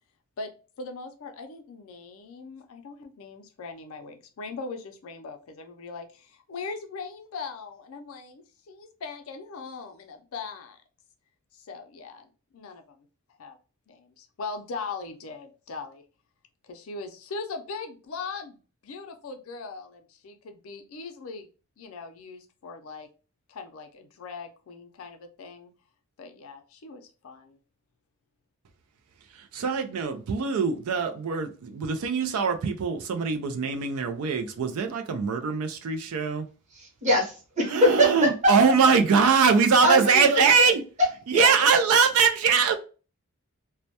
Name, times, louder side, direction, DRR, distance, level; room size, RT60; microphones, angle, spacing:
voice 1, 0.8-10.8 11.5-13.1 13.4-13.6 13.9-16.0 16.6-21.5 21.8-23.1 23.5-25.7 26.2-27.6, left 4 dB, 70° left, 0.4 m, -40 dB
voice 2, 29.3-36.5 37.7-40.8 41.3-42.7, right 5 dB, 85° right, 0.4 m, -22 dB
voice 3, 36.7-38.5 39.8-40.7 41.3-41.5, equal, 35° right, 0.8 m, -23 dB
2.1 x 2.1 x 2.7 m
head